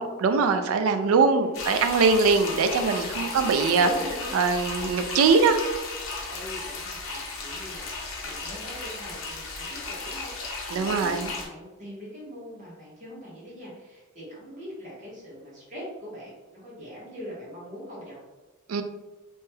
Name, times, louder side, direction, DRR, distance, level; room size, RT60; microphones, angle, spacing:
voice 1, 0.0-3.9 4.3-5.6 10.7-11.3 18.7-18.8, right 4 dB, 85° right, 8 dB, 0.3 m, -22 dB
voice 2, 1.1-1.6 3.1-4.3 4.8-5.0 6.3-18.2, equal, 35° right, -7 dB, 1.2 m, -41 dB
sound 1, 1.5-11.5, left 3 dB, 75° left, 0.6 m, -35 dB
3.1 x 2.9 x 2.2 m, 1.2 s
head